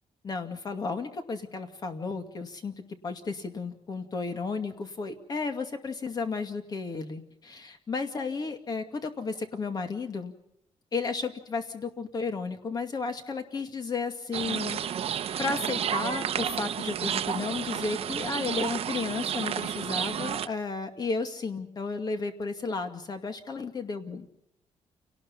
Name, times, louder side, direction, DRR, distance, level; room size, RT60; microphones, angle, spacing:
voice 1, 0.2-2.7 3.0-10.3 10.9-14.8 15.4-24.3, left 4 dB, 35° left, 7 dB, 2.4 m, -33 dB
sound 1, 14.3-20.5, right 9 dB, 55° right, 1.0 m, -31 dB
29.0 x 19.0 x 5.6 m, 0.76 s
cardioid pair, 160°, 12 cm